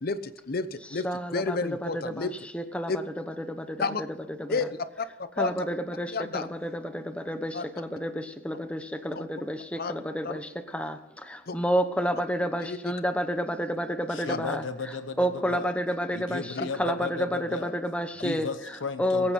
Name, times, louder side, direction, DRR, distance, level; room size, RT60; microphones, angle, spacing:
voice 1, 0.0-2.3 2.9-3.0 3.8-4.0 4.5-5.1 5.4-5.5 6.1-6.5 7.5-7.7 9.2-9.3 9.8-9.9 10.2-10.4 11.5-11.6 12.6-12.8 14.3-14.4 16.6-16.7, left 4 dB, 50° left, 12 dB, 0.8 m, -30 dB
voice 2, 0.9-4.7 5.4-14.6 15.2-18.5 19.0-19.3, equal, 5° left, 7 dB, 1.1 m, -30 dB
voice 3, 14.1-15.7 16.1-17.8 18.2-19.3, left 4 dB, 85° left, 10 dB, 1.0 m, -35 dB
22.5 x 8.8 x 4.3 m, 0.93 s
head